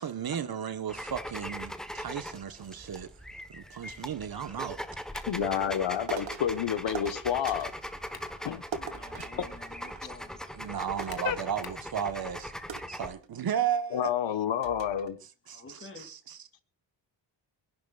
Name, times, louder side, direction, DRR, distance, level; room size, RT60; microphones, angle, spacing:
voice 1, 0.0-3.1 3.5-5.0 10.5-12.5 12.9-14.1 15.5-16.6, right 8 dB, 55° right, 1.4 m, -34 dB
sound 1, 0.9-13.1, equal, ahead, 1.3 m, -41 dB
sound 2, 5.1-5.4 7.8-8.4 8.9-9.0 11.1-11.9, left 7 dB, 55° left, 1.9 m, -48 dB
voice 2, 5.3-7.7 8.4-8.9 9.4-9.5 11.2-11.4 13.9-15.2, left 9 dB, 80° left, 1.5 m, -29 dB
sound 3, 6.1-6.5 6.9-7.8 8.7-10.3 10.6-10.7 11.0-12.0 12.7-13.6 14.2-14.3 14.6-15.1, right 6 dB, 80° right, 2.2 m, -41 dB
voice 3, 8.7-10.4 15.5-16.1, left 4 dB, 30° left, 3.1 m, -49 dB
26.0 x 11.5 x 2.5 m
wide cardioid pair, 165°, 44 cm